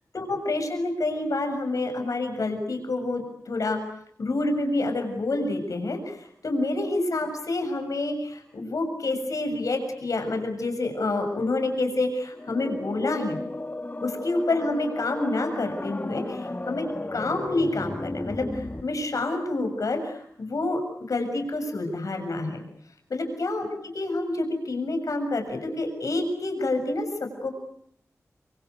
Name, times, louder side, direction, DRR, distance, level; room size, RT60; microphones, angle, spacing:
voice 1, 0.1-3.8 4.2-13.4 14.0-20.8 21.1-22.6 23.1-23.7 23.9-27.5, left 2 dB, 75° left, 5 dB, 7.0 m, -28 dB
sound 1, 12.3-18.8, left 2 dB, 30° left, 2.4 m, -34 dB
27.0 x 25.5 x 8.2 m, 0.69 s
cardioid pair, 55°, 6 cm